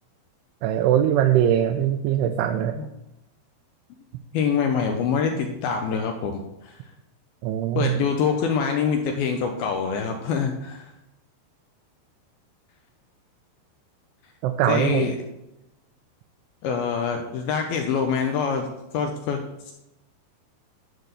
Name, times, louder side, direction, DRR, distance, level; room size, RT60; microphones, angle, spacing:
voice 1, 0.6-2.8 7.4-8.0 14.4-15.1, right 10 dB, 80° right, 6 dB, 2.4 m, -21 dB
voice 2, 4.3-6.8 7.8-10.9 14.7-15.2 16.6-18.7 18.9-19.7, left 6 dB, 80° left, 4 dB, 2.2 m, -25 dB
11.0 x 4.0 x 6.7 m, 0.90 s
omnidirectional pair, 5.0 m